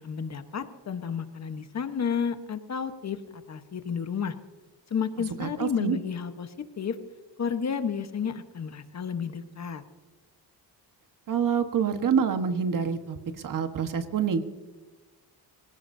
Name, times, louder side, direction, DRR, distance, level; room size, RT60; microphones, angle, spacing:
voice 1, 0.0-4.3 4.9-7.0 7.4-9.8, left 7 dB, 40° left, 9 dB, 1.2 m, -31 dB
voice 2, 5.4-6.0 11.3-13.2 13.4-14.4, right 7 dB, 55° right, 8 dB, 1.4 m, -26 dB
24.5 x 17.0 x 2.7 m, 1.2 s
cardioid pair, 105°, 39 cm